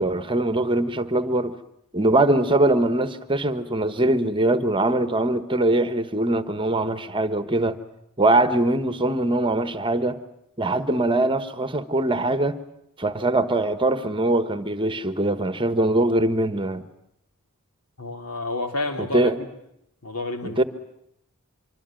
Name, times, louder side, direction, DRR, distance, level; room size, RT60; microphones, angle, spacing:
voice 1, 0.0-1.5 1.9-7.8 8.2-10.2 10.6-12.6 13.0-16.8 19.1-19.4 20.4-20.6, right 2 dB, 20° right, 1.3 m, -22 dB
voice 2, 18.0-19.5 20.0-20.6, left 2 dB, 80° left, 3.6 m, -30 dB
25.5 x 24.5 x 9.1 m
head